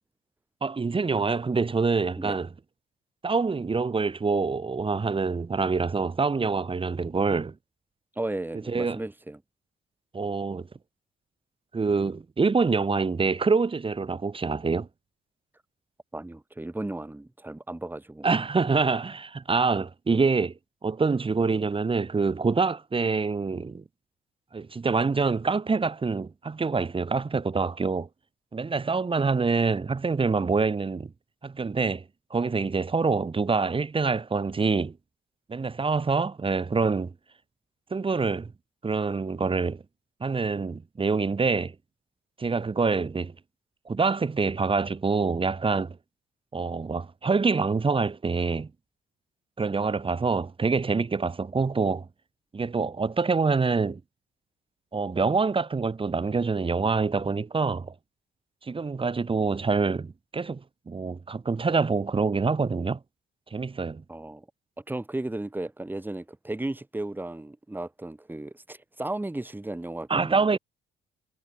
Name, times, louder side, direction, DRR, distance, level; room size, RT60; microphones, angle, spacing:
voice 1, 0.6-2.5 3.2-7.5 8.7-9.0 10.1-10.7 11.7-14.9 18.2-20.5 20.8-23.8 24.5-28.1 28.5-31.1 31.4-32.0 32.3-35.0 35.5-37.1 37.9-38.5 38.8-39.8 40.2-41.7 42.4-43.3 43.9-46.0 46.5-48.7 49.6-52.1 52.5-54.0 54.9-57.9 58.6-63.0 63.5-64.0 70.1-70.6, right 4 dB, 25° right, 1.6 m, -26 dB
voice 2, 8.2-9.4 16.1-18.3 64.1-64.5 64.9-70.6, right 2 dB, 10° right, 1.8 m, -35 dB
cardioid pair, 90°, 20 cm